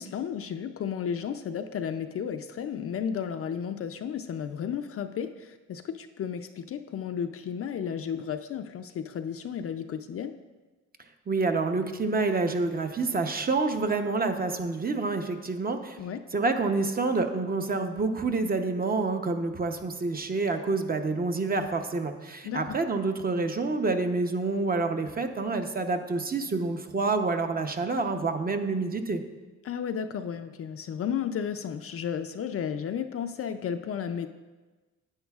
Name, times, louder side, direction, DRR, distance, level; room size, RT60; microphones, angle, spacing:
voice 1, 0.0-10.3 16.0-16.2 22.5-22.8 29.6-34.3, left 8 dB, 50° left, 7 dB, 0.5 m, -33 dB
voice 2, 11.3-16.0 16.3-29.2, right 3 dB, 30° right, 6 dB, 0.8 m, -28 dB
10.0 x 8.8 x 2.4 m, 1.2 s
cardioid pair, 90°, 30 cm